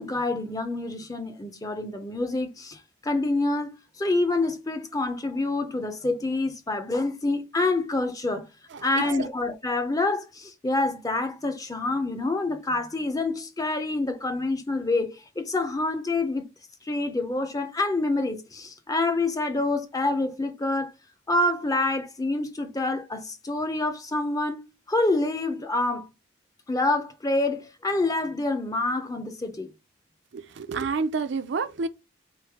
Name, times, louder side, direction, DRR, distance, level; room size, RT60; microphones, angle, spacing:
voice 1, 0.0-8.5 8.8-16.5 16.8-20.9 21.3-24.6 24.9-26.1 26.7-29.7, left 2 dB, 15° left, 0.5 m, -27 dB
voice 2, 8.7-9.3 30.3-31.9, right 4 dB, 55° right, 0.4 m, -29 dB
4.2 x 3.1 x 3.4 m
head